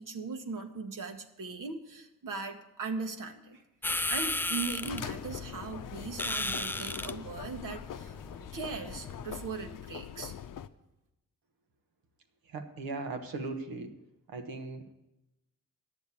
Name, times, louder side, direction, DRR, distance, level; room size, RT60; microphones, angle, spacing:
voice 1, 0.0-3.6 4.1-8.1 8.5-10.3, right 4 dB, 65° right, 5 dB, 1.3 m, -39 dB
sound 1, 3.8-9.5, left 2 dB, 5° left, 0.4 m, -36 dB
sound 2, 4.8-10.7, left 9 dB, 65° left, 0.6 m, -42 dB
voice 2, 12.5-13.9 14.3-14.9, right 3 dB, 85° right, 7 dB, 1.3 m, -38 dB
10.5 x 7.2 x 8.2 m, 0.94 s
cardioid pair, 60°, 34 cm